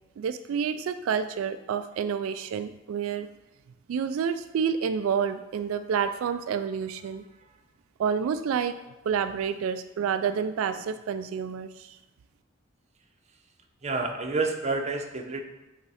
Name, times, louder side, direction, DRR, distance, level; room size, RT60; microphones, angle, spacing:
voice 1, 0.2-3.3 3.9-7.2 8.0-8.8 9.1-12.0, right 7 dB, 85° right, 10 dB, 0.3 m, -29 dB
voice 2, 13.8-15.4, right 3 dB, 35° right, 3 dB, 0.7 m, -29 dB
7.9 x 3.6 x 4.2 m, 1.0 s
head